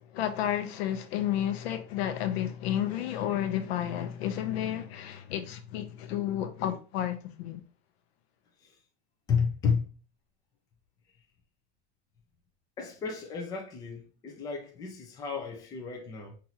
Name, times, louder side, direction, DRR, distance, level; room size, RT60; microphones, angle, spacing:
voice 1, 0.1-7.6, left 11 dB, 80° left, 0.8 m, -31 dB
voice 2, 9.3-9.9 12.8-16.4, left 6 dB, 10° left, 0.4 m, -32 dB
5.6 x 2.6 x 2.8 m
supercardioid pair, 170°, 31 cm